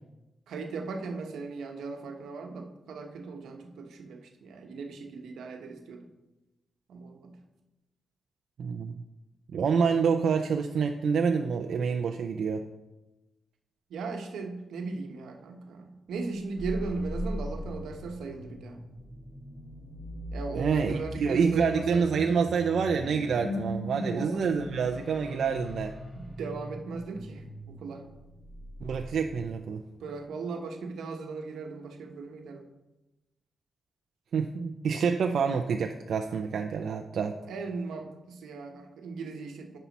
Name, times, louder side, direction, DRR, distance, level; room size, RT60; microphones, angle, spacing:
voice 1, 0.5-6.1 6.9-7.4 13.9-18.8 20.3-22.3 24.0-24.5 26.2-28.1 30.0-32.7 37.5-39.8, right 4 dB, 90° right, 4 dB, 1.0 m, -37 dB
voice 2, 8.6-9.0 9.5-12.6 20.6-26.0 28.8-29.8 34.3-37.4, right 6 dB, 70° right, 5 dB, 0.5 m, -27 dB
sound 1, 16.3-29.8, left 1 dB, 30° left, 2.2 m, -40 dB
10.0 x 5.5 x 4.1 m, 1.0 s
cardioid pair, 95°, 0 cm